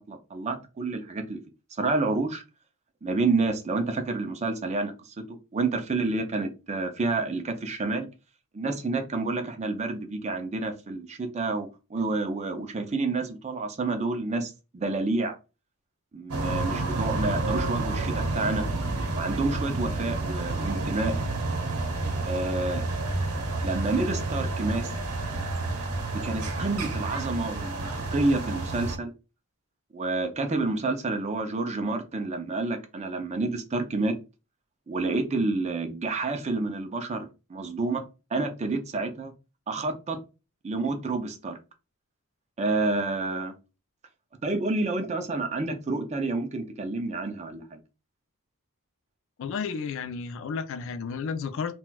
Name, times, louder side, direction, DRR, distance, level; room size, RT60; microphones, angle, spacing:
voice 1, 0.1-1.4 1.8-2.4 3.0-5.2 5.5-8.1 8.5-15.3 16.1-18.6 19.1-21.1 22.3-22.9 23.6-24.8 26.2-29.1 29.9-34.1 34.9-38.0 38.3-39.3 39.7-40.2 40.6-41.6 42.6-43.5 44.4-47.8, right 3 dB, 30° right, 0.4 m, -29 dB
sound 1, 16.3-29.0, right 2 dB, 85° right, 0.8 m, -30 dB
voice 2, 49.4-51.8, left 5 dB, 60° left, 0.3 m, -32 dB
4.1 x 2.2 x 2.2 m
head